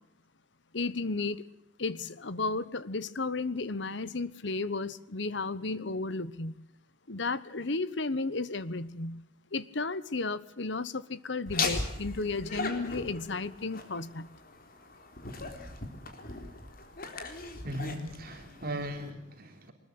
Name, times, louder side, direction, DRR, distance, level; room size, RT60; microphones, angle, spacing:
voice 1, 0.7-1.4 1.8-6.6 7.1-9.2 9.5-14.3, left 3 dB, 70° left, 17 dB, 1.2 m, -33 dB
Laughter, 11.5-19.1, left 3 dB, 50° left, 3.7 m, -38 dB
voice 2, 17.6-19.7, equal, 55° right, 4 dB, 3.5 m, -38 dB
24.0 x 20.5 x 7.9 m, 0.78 s
head